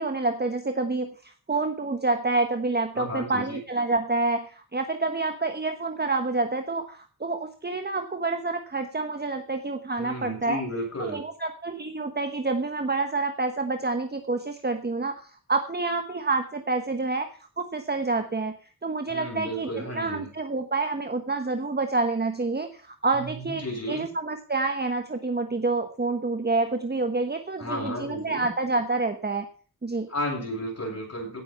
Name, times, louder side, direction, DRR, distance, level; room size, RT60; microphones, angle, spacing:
voice 1, 0.0-10.6 11.0-17.3 17.6-18.5 18.8-29.5 29.8-30.1, right 3 dB, 25° right, 6 dB, 1.2 m, -28 dB
voice 2, 2.9-3.6 10.0-11.2 19.1-20.3 23.1-24.1 27.6-28.5 30.1-31.4, equal, 45° left, -1 dB, 8.0 m, -33 dB
17.0 x 7.8 x 5.7 m, 0.39 s
wide cardioid pair, 115°, 37 cm